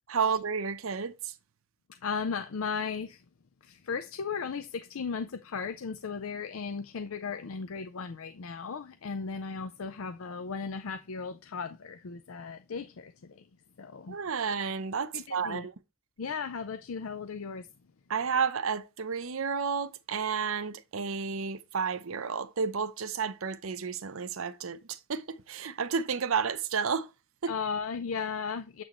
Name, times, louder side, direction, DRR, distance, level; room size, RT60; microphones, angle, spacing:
voice 1, 0.1-1.3 14.1-15.7 18.1-27.1 27.4-27.5, right 6 dB, 80° right, 0.7 m, -31 dB
voice 2, 1.9-3.2 3.6-13.5 13.8-14.2 15.1-15.7 16.2-17.7 27.5-28.8, left 5 dB, 80° left, 0.5 m, -36 dB
7.5 x 6.2 x 3.0 m
head